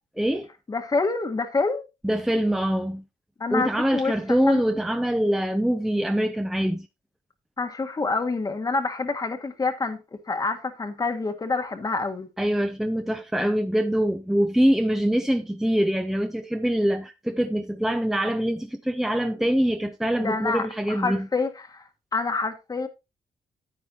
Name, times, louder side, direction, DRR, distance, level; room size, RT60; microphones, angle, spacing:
voice 1, 0.2-0.5 2.0-3.0 3.5-6.9 12.4-21.3, equal, 5° right, 0.6 m, -24 dB
voice 2, 0.7-1.8 3.4-4.6 7.6-10.0 10.3-12.3 20.2-21.8 22.1-22.9, left 3 dB, 30° left, 1.3 m, -27 dB
10.0 x 9.0 x 2.8 m
cardioid pair, 95°, 13 cm